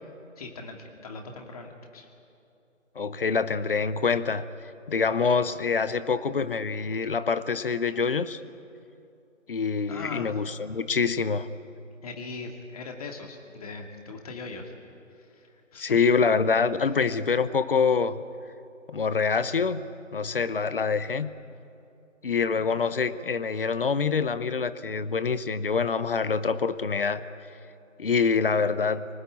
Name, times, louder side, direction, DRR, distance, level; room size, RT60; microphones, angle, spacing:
voice 1, 0.4-2.1 9.9-10.3 12.0-14.7 15.1-16.0, left 3 dB, 30° left, 3 dB, 2.4 m, -40 dB
voice 2, 3.0-4.5 4.9-8.4 9.5-11.5 15.8-18.2 18.9-19.8 20.1-21.3 22.2-27.2 28.0-29.1, left 5 dB, 45° left, 14 dB, 1.0 m, -25 dB
27.0 x 19.0 x 8.7 m, 2.7 s
figure-of-eight pair, 155°, 40 cm